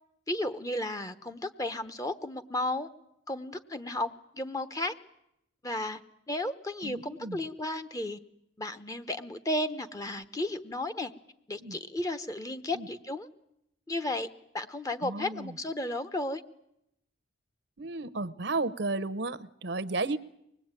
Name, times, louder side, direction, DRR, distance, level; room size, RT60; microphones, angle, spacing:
voice 1, 0.3-2.9 3.3-4.9 5.6-6.0 6.3-8.2 8.6-11.1 11.5-13.3 13.9-14.3 14.5-16.4, left 1 dB, 15° left, 10 dB, 1.0 m, -33 dB
voice 2, 6.8-7.4 11.6-11.8 12.7-12.9 15.0-15.5 17.8-20.2, right 3 dB, 60° right, 17 dB, 0.9 m, -33 dB
24.5 x 20.0 x 9.0 m, 0.80 s
head